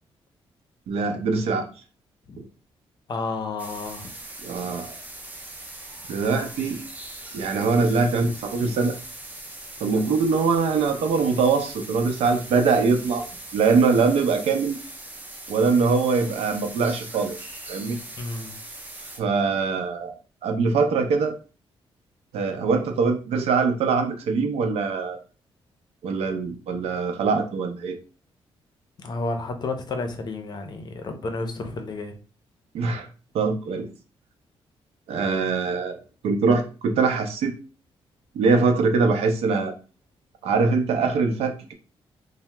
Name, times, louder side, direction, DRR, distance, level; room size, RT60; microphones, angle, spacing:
voice 1, 0.9-1.7 2.4-2.5 4.4-4.9 6.1-6.8 7.3-9.0 9.8-13.3 13.5-14.8 15.5-17.4 17.7-18.0 19.2-20.2 20.4-21.3 22.3-25.2 26.0-28.0 32.7-33.1 33.3-33.9 35.1-36.0 36.2-37.5 38.3-39.7 40.4-41.7, right 4 dB, 85° right, 5 dB, 0.6 m, -22 dB
voice 2, 3.1-4.1 18.2-18.5 29.0-32.1, left 3 dB, 45° left, 6 dB, 0.5 m, -31 dB
sound 1, 3.6-19.2, right 2 dB, 15° right, 0.5 m, -40 dB
2.8 x 2.0 x 3.3 m, 0.36 s
cardioid pair, 130°, 10 cm